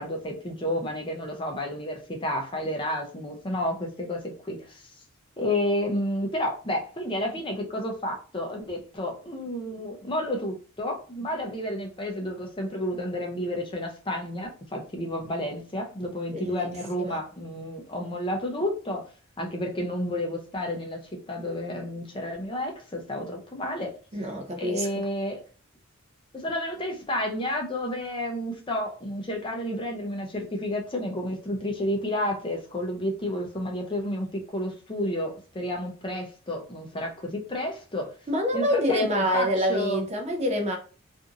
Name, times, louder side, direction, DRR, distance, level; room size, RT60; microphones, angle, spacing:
voice 1, 0.0-4.9 5.4-19.0 19.4-24.3 24.6-25.4 26.3-38.1 38.5-40.0, left 1 dB, 25° left, 0.5 m, -31 dB
voice 2, 16.3-16.7 17.0-17.2 24.1-25.0 38.3-40.8, equal, 30° right, 0.5 m, -26 dB
2.8 x 2.5 x 2.4 m
head